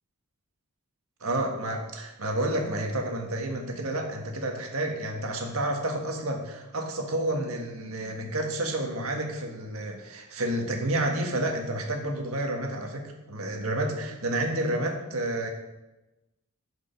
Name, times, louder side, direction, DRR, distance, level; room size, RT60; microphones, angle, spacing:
voice 1, 1.2-15.5, right 1 dB, 75° right, 3 dB, 1.5 m, -30 dB
11.0 x 5.1 x 5.1 m, 1.0 s
head